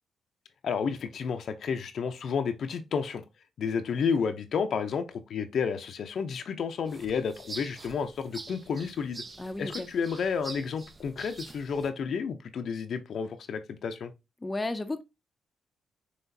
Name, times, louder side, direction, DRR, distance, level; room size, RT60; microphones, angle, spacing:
voice 1, 0.6-3.2 3.6-9.2 9.6-14.1, left 6 dB, 65° left, 0.6 m, -31 dB
sound 1, 6.9-11.9, right 3 dB, 35° right, 0.6 m, -45 dB
voice 2, 9.4-9.9 14.4-15.0, left 2 dB, 20° left, 0.6 m, -33 dB
5.8 x 3.0 x 2.7 m
cardioid pair, 90°, 0 cm